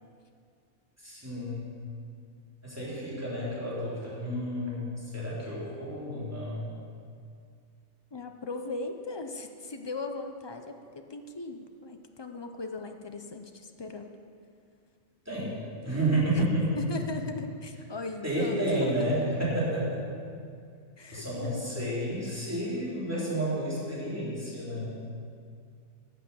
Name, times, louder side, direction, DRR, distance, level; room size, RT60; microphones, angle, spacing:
voice 1, 1.0-1.7 2.6-6.7 15.2-15.6 15.8-16.8 18.2-20.0 21.1-25.0, right 1 dB, 10° right, -7 dB, 3.5 m, -30 dB
voice 2, 8.1-14.1 16.3-16.5 16.8-19.1 21.0-21.7, left 3 dB, 35° left, 5 dB, 0.4 m, -38 dB
12.0 x 8.2 x 7.0 m, 2.3 s
omnidirectional pair, 1.5 m